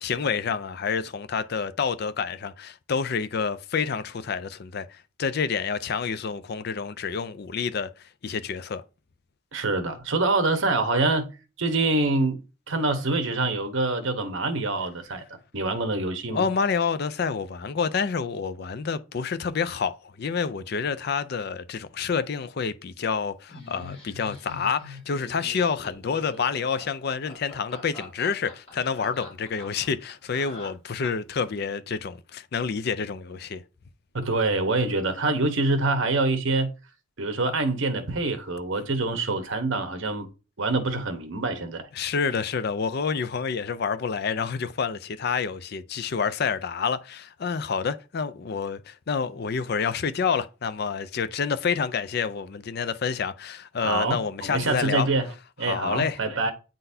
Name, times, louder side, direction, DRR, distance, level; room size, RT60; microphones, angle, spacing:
voice 1, 0.0-7.9 8.2-8.8 16.3-19.9 20.2-33.6 41.9-55.1 55.6-56.2, left 5 dB, 50° left, 0.4 m, -28 dB
voice 2, 9.5-11.3 11.6-15.2 15.5-16.5 34.1-36.7 37.2-40.3 40.6-41.9 53.8-55.3 55.6-56.5, right 2 dB, 65° right, 1.0 m, -25 dB
Laughter, 23.5-31.3, left 2 dB, 30° left, 3.3 m, -44 dB
8.8 x 3.9 x 2.7 m
head